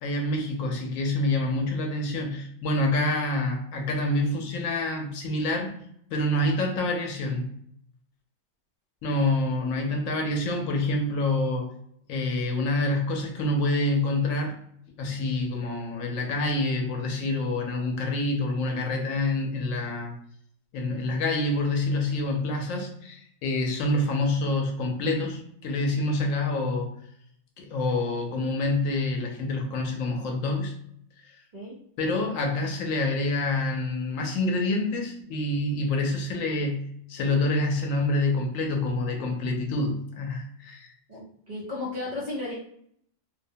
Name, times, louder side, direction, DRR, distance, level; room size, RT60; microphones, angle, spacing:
voice 1, 0.0-5.7 6.1-7.5 9.0-11.7 12.1-14.6 15.0-20.1 20.7-26.9 27.6-30.7 32.0-40.9, left 2 dB, 90° left, 2 dB, 1.0 m, -27 dB
voice 2, 41.1-42.6, left 2 dB, 45° right, -5 dB, 0.6 m, -34 dB
2.6 x 2.0 x 2.7 m, 0.67 s
omnidirectional pair, 1.3 m